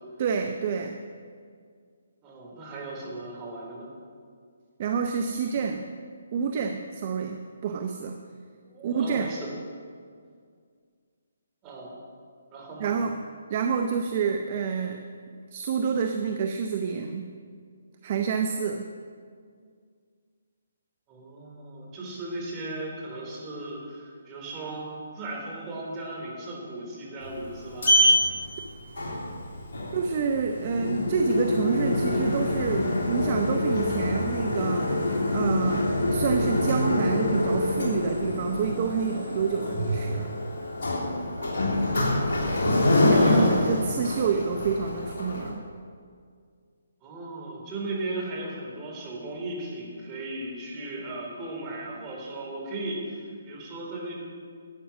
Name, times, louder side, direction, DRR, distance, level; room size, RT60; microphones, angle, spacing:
voice 1, 0.2-1.0 4.8-5.9 6.3-8.2 8.8-9.3 12.8-13.2 13.5-15.0 15.5-17.3 18.0-18.9 29.9-40.3 43.0-45.6, right 6 dB, 40° right, 5 dB, 0.7 m, -28 dB
voice 2, 2.2-3.9 8.6-9.5 11.6-11.9 12.5-12.9 21.1-24.9 25.1-28.0 42.0-43.7 47.0-54.1, right 2 dB, 20° right, -3 dB, 3.6 m, -36 dB
Sliding door, 27.2-45.5, left 1 dB, 55° left, 3.3 m, -26 dB
12.0 x 8.9 x 6.1 m, 2.1 s
figure-of-eight pair, 140°, 0 cm